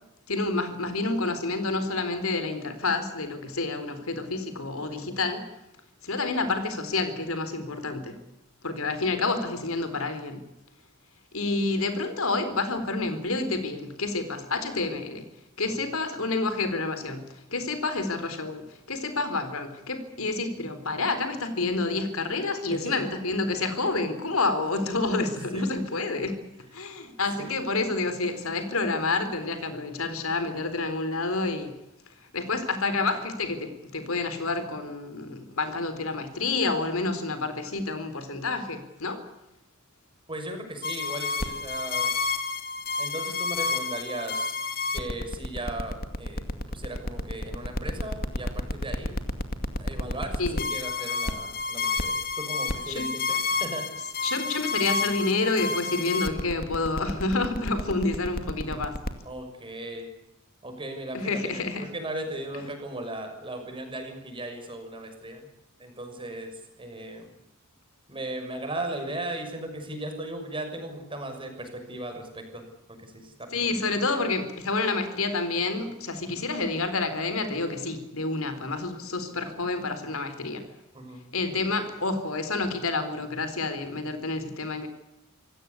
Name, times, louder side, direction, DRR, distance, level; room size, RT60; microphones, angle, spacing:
voice 1, 0.3-5.5 6.0-8.2 8.6-10.4 11.3-15.3 15.6-26.4 26.7-31.8 32.3-39.2 50.4-50.7 52.9-53.1 54.2-59.0 61.1-61.9 73.5-80.7 81.3-84.9, left 3 dB, 70° left, 10 dB, 4.0 m, -29 dB
voice 2, 22.7-23.1 25.5-25.6 27.4-27.5 40.3-42.1 43.0-44.6 44.9-49.1 49.7-53.8 54.2-54.3 59.2-60.1 60.6-65.5 65.8-67.3 68.1-72.6 73.0-73.8 80.9-81.2, right 1 dB, 25° right, 5 dB, 6.3 m, -37 dB
sound 1, 40.8-59.1, left 3 dB, 45° left, 2.3 m, -30 dB
27.0 x 17.0 x 8.4 m, 0.91 s
head